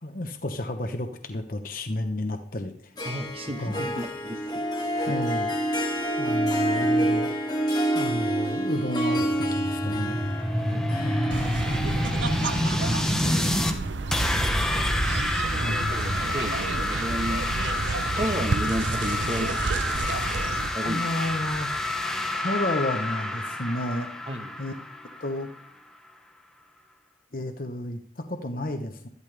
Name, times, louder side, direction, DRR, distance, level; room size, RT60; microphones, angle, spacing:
voice 1, 0.0-3.1 3.6-3.9 5.1-5.5 6.2-7.3 7.9-9.3 9.6-10.2 11.0-11.6 13.1-13.6 15.6-16.1 20.8-21.7 22.3-24.1 24.6-24.7 25.2-25.5 27.3-29.1, left 1 dB, 50° left, 5 dB, 1.0 m, -31 dB
Harp, 3.0-14.4, right 1 dB, 20° left, 1.6 m, -28 dB
voice 2, 3.0-4.4 5.0-5.2 10.5-10.9 12.5-13.6 15.5-17.5 18.1-20.4 20.7-21.1 24.3-24.5, right 1 dB, 30° right, 6 dB, 1.2 m, -34 dB
sound 1, 9.2-13.7 14.1-25.7, left 1 dB, 5° left, 1.0 m, -28 dB
sound 2, 11.3-20.7, right 3 dB, 85° right, 0.7 m, -30 dB
13.0 x 12.0 x 3.4 m, 0.63 s
head